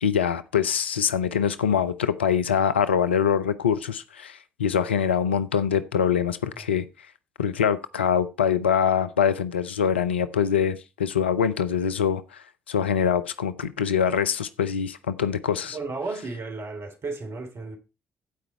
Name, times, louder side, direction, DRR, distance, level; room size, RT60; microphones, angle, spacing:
voice 1, 0.0-6.8 7.4-15.8, left 7 dB, 85° left, 0.5 m, -24 dB
voice 2, 15.7-17.8, right 3 dB, 50° right, 3.0 m, -33 dB
15.0 x 5.0 x 4.4 m
figure-of-eight pair, 45°, 6 cm